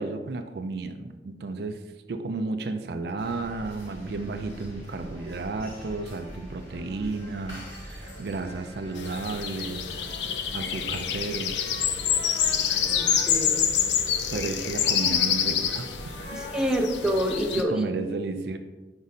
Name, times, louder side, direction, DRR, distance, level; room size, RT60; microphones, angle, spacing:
voice 1, 0.0-1.8 2.1-10.0 10.5-11.6 14.3-15.9 16.3-16.4 17.5-18.6, right 3 dB, 60° right, 8 dB, 0.4 m, -33 dB
sound 1, 3.2-17.4, equal, 40° left, 1.7 m, -43 dB
sound 2, 9.0-17.6, left 8 dB, 80° left, 0.5 m, -27 dB
voice 2, 12.7-13.6 16.3-17.9, equal, 5° right, 0 dB, 0.6 m, -27 dB
5.2 x 4.9 x 4.1 m, 1.2 s
head